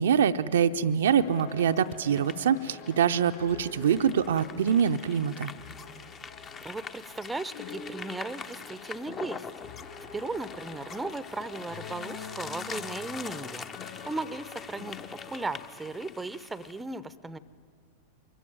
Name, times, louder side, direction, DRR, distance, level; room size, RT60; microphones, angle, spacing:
voice 1, 0.0-5.5, right 8 dB, 65° right, 8 dB, 0.5 m, -24 dB
sound 1, 1.1-15.7, left 6 dB, 50° left, 5.7 m, -46 dB
sound 2, 1.4-16.8, left 5 dB, 25° left, 0.7 m, -44 dB
voice 2, 6.6-9.5 10.1-13.6 14.0-17.4, right 3 dB, 10° right, 17 dB, 0.6 m, -36 dB
24.0 x 14.5 x 9.4 m, 2.1 s
figure-of-eight pair, 90°, 0 cm